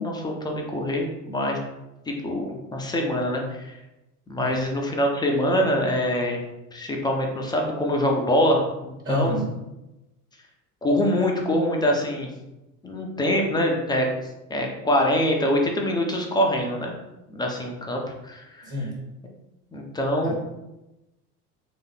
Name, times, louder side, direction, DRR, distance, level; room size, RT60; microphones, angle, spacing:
voice 1, 0.0-1.6 2.1-3.8 4.3-6.4 6.7-9.4 10.8-12.3 12.8-14.1 14.5-16.9 17.3-18.5 19.7-20.3, equal, 10° left, 0 dB, 0.6 m, -24 dB
voice 2, 9.0-9.5 18.6-19.0 20.2-20.3, left 2 dB, 25° right, -4 dB, 1.2 m, -28 dB
3.6 x 2.9 x 3.5 m, 0.96 s
figure-of-eight pair, 70°, 47 cm